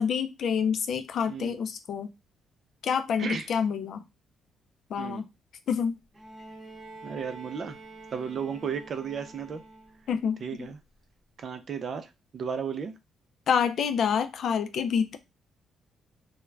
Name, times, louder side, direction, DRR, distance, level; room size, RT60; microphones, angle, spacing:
voice 1, 0.0-2.1 2.8-4.0 4.9-5.3 5.7-6.0 10.1-10.7 13.5-15.2, left 7 dB, 65° left, 0.4 m, -27 dB
voice 2, 1.3-1.6 3.2-3.5 5.0-5.2 7.0-7.8 8.1-9.6 10.4-10.8 11.4-12.9, right 6 dB, 50° right, 0.4 m, -34 dB
Bowed string instrument, 6.1-10.2 11.4-11.5, right 2 dB, 25° right, 0.8 m, -47 dB
2.3 x 2.1 x 3.2 m
cardioid pair, 90°, 0 cm